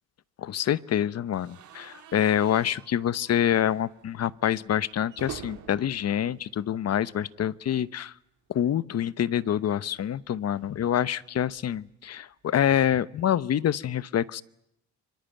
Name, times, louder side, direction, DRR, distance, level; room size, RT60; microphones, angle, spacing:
voice 1, 0.4-8.1 8.5-14.4, left 10 dB, 55° left, 17 dB, 1.0 m, -26 dB
sound 1, 1.3-7.4 7.7-7.9 8.1-8.2 9.5-11.8, right 8 dB, 75° right, 3.6 m, -48 dB
25.5 x 24.0 x 9.2 m, 0.80 s
cardioid pair, 90°, 30 cm